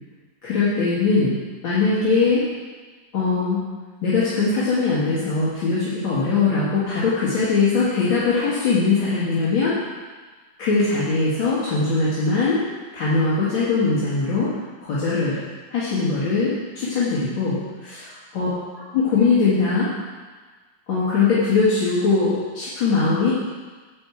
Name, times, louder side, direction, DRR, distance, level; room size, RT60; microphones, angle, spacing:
voice 1, 0.4-1.4 1.6-2.4 3.1-3.6 4.0-9.7 10.6-12.6 12.9-14.5 14.8-15.4 15.7-18.5 18.9-19.9 20.9-23.3, left 4 dB, 75° left, -9 dB, 2.4 m, -21 dB
8.8 x 4.9 x 7.1 m, 1.4 s
omnidirectional pair, 2.1 m